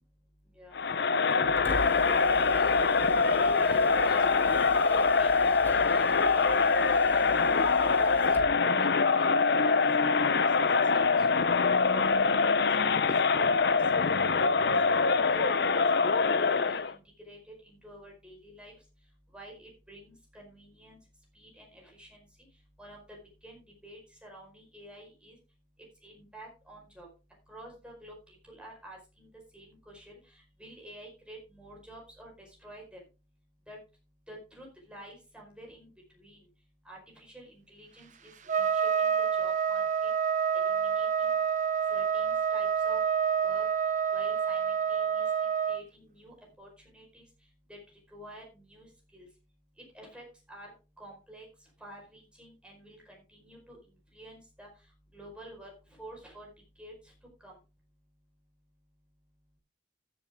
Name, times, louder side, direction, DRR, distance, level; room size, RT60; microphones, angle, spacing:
Crowd, 0.8-16.9, left 4 dB, 65° left, 0.7 m, -24 dB
Mechanisms, 1.3-8.6, left 1 dB, 10° left, 1.9 m, -43 dB
voice 1, 2.7-7.2 7.9-8.4 8.7-10.5 10.9-11.5 11.9-12.3 12.6-14.7 15.3-17.0 17.3-17.4 17.6-18.7 19.3-21.0 21.3-22.2 22.8-23.0 23.4-25.4 26.0-27.1 27.5-30.1 30.6-32.3 32.6-33.0 33.7-33.8 34.3-35.9 36.2-36.4 36.8-38.3 38.6-40.1 40.5-41.4 41.9-43.0 43.4-43.6 44.1-45.3 45.7-47.2 47.7-47.8 48.1-48.9 49.1-49.3 49.9-50.7 51.0-51.5 51.8-53.8 54.1-54.7 55.1-55.7 56.0-56.5 56.8-56.9 57.4-57.5, right 1 dB, 5° right, -1 dB, 4.9 m, -49 dB
Trumpet, 38.5-45.8, right 7 dB, 45° right, 0.9 m, -28 dB
14.0 x 7.9 x 3.7 m, 0.31 s
head